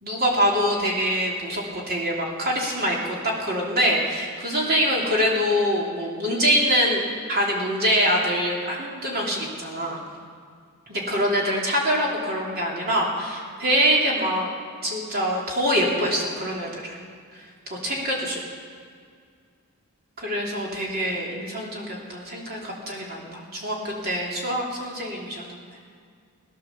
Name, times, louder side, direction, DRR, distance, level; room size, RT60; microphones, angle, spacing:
voice 1, 0.0-7.0 7.3-10.0 10.9-14.5 14.8-17.0 17.7-18.4 20.2-25.6, equal, 45° right, -3 dB, 3.0 m, -24 dB
17.5 x 10.5 x 7.2 m, 2.1 s
head